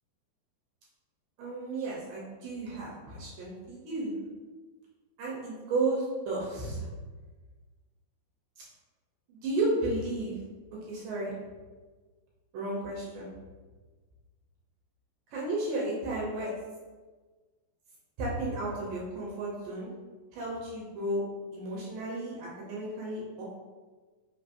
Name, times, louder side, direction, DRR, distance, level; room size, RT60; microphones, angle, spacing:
voice 1, 1.4-4.3 5.2-6.9 9.3-10.4 10.9-11.4 12.5-13.3 15.3-16.5 18.2-19.9 20.3-21.2 21.5-23.4, right 2 dB, 75° right, -5 dB, 2.3 m, -33 dB
5.4 x 2.9 x 2.5 m, 1.3 s
omnidirectional pair, 4.3 m